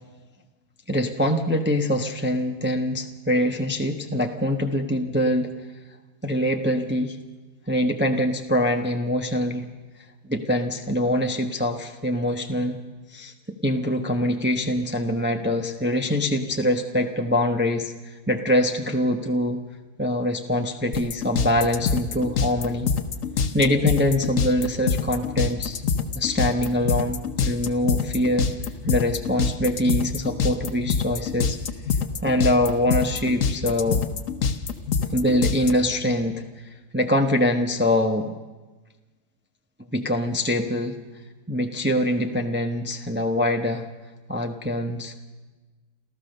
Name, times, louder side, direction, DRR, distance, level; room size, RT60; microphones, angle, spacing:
voice 1, 0.9-5.5 6.2-7.2 7.7-9.7 10.3-12.8 13.1-19.6 20.0-22.9 23.5-25.8 26.1-28.5 28.9-31.6 32.2-34.0 35.1-36.4 36.9-38.4 39.9-41.0 41.5-43.9 44.3-45.3, left 1 dB, 10° right, 4 dB, 0.9 m, -24 dB
sound 1, 20.9-35.7, left 6 dB, 55° left, 1.4 m, -25 dB
28.0 x 14.0 x 6.6 m, 1.2 s
omnidirectional pair, 1.7 m